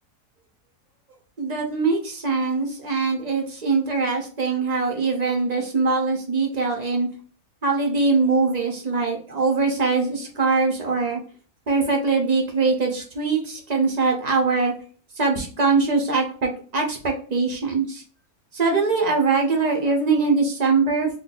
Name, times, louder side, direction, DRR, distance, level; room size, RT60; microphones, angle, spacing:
voice 1, 1.4-7.1 7.6-11.2 11.7-14.7 15.2-18.0 18.5-21.2, right 4 dB, 45° right, 1 dB, 0.5 m, -22 dB
2.6 x 2.2 x 4.0 m, 0.41 s
omnidirectional pair, 1.6 m